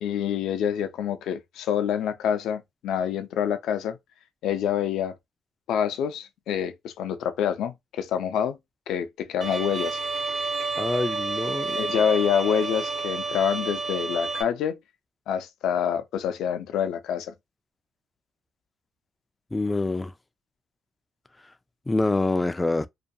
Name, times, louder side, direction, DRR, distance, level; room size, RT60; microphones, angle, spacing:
voice 1, 0.0-4.0 4.4-5.1 5.7-8.6 8.9-10.0 11.7-14.8 15.3-17.3, left 8 dB, 85° left, 0.5 m, -27 dB
Bowed string instrument, 9.4-14.4, right 3 dB, 45° right, 0.6 m, -30 dB
voice 2, 10.8-11.8 19.5-20.1 21.9-22.9, left 2 dB, 15° left, 0.3 m, -25 dB
2.4 x 2.2 x 2.7 m
cardioid pair, 90°, 0 cm